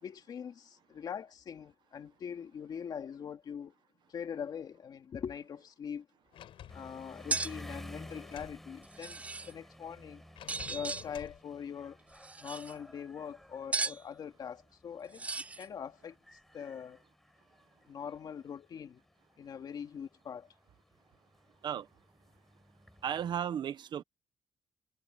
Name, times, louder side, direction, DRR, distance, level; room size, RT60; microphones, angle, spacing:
voice 1, 0.0-3.7 4.1-6.1 6.7-10.2 10.7-12.0 12.4-16.2 16.5-17.0 17.9-19.0 19.4-20.5, left 7 dB, 40° left, 2.6 m, -42 dB
Sliding door, 6.3-8.6 10.4-11.4, left 11 dB, 60° left, 7.0 m, -51 dB
sound 1, 6.7-23.4, equal, ahead, 6.4 m, -54 dB
sound 2, 7.3-7.5 8.8-9.5 10.5-11.0 12.1-12.7 13.7-14.0 15.1-15.7, right 3 dB, 15° right, 0.4 m, -36 dB
voice 2, 23.0-24.0, right 9 dB, 50° right, 1.0 m, -34 dB
cardioid pair, 170°, 10 cm